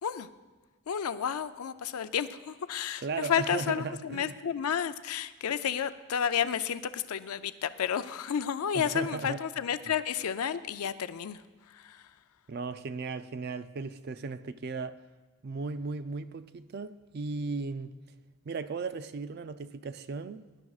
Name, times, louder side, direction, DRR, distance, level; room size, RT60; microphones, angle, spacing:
voice 1, 0.9-11.4 11.7-12.1, left 8 dB, 85° left, 0.5 m, -31 dB
voice 2, 3.0-4.3 8.7-9.4 12.5-15.0 15.4-17.9 18.5-20.4, right 4 dB, 45° right, 0.4 m, -36 dB
18.5 x 11.0 x 2.4 m
head